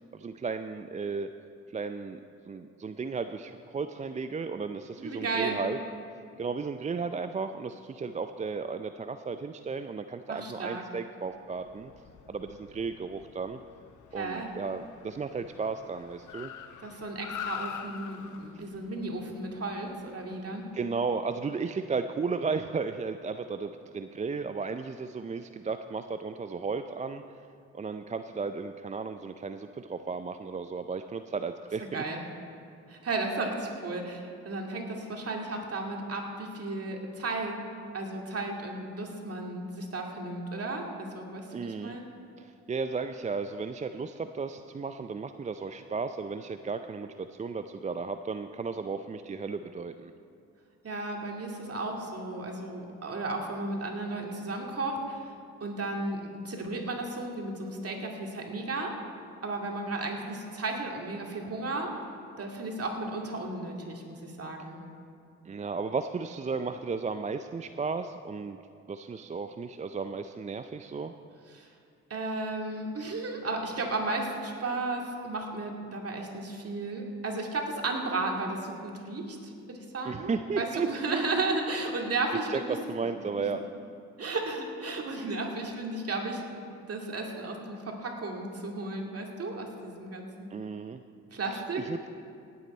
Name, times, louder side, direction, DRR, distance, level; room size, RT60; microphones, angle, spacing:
voice 1, 0.1-1.3 1.7-2.2 2.5-5.8 6.4-11.9 12.3-13.6 14.1-16.5 20.7-27.2 27.7-31.9 41.5-42.0 42.4-50.1 65.4-68.6 68.9-71.1 80.1-81.2 82.5-83.6 90.5-91.0 91.5-92.1, right 4 dB, 20° right, 9 dB, 0.4 m, -34 dB
voice 2, 5.0-5.6 10.3-10.8 14.1-14.5 16.8-20.6 31.9-32.2 32.9-37.6 37.9-42.1 50.8-55.2 55.6-58.9 59.4-61.9 62.4-64.8 71.5-71.7 72.1-82.8 84.2-86.6 86.9-90.5 91.3-91.8, right 2 dB, 45° right, 1 dB, 2.3 m, -34 dB
Car, 11.4-21.0, left 8 dB, 60° left, 0.8 m, -45 dB
18.0 x 8.5 x 4.3 m, 2.5 s
hypercardioid pair, 50°, 34 cm